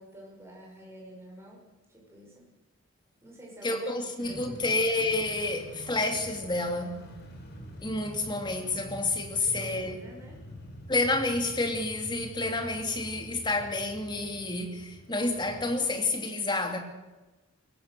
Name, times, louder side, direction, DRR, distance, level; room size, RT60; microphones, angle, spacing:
voice 1, 0.0-1.6 1.9-2.4 3.2-3.9 4.3-4.8 9.2-10.4, right 1 dB, 10° right, -3 dB, 6.4 m, -49 dB
voice 2, 3.6-7.0 7.8-10.0 10.9-16.8, left 2 dB, 20° left, 4 dB, 2.7 m, -29 dB
sound 1, 4.2-15.9, equal, 50° left, 4.6 m, -46 dB
22.5 x 17.5 x 6.8 m, 1.1 s
head